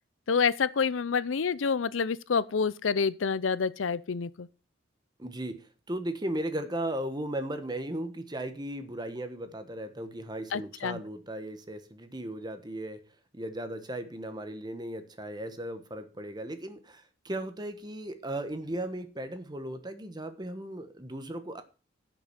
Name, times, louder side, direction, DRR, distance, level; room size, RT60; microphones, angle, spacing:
voice 1, 0.3-4.5 10.5-11.0, left 5 dB, 85° left, 0.6 m, -28 dB
voice 2, 5.2-13.0 13.3-21.6, right 1 dB, 20° right, 1.2 m, -36 dB
11.0 x 6.0 x 6.7 m
head